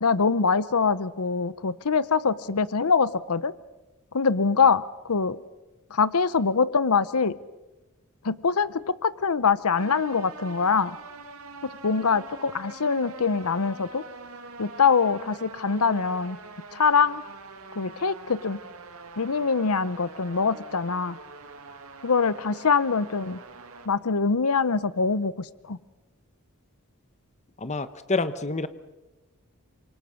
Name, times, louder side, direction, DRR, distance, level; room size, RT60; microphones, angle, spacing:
voice 1, 0.0-3.5 4.1-4.8 5.1-5.4 5.9-7.4 8.2-11.0 11.8-14.0 14.6-16.4 16.7-17.2 17.8-18.6 19.2-21.2 22.0-23.4 23.9-25.8, left 5 dB, 85° left, 17 dB, 0.8 m, -24 dB
sound 1, 9.8-23.9, right 4 dB, 75° right, 2.2 m, -44 dB
voice 2, 27.6-28.7, left 3 dB, 30° left, 12 dB, 1.1 m, -28 dB
28.5 x 25.5 x 6.4 m, 1.1 s
head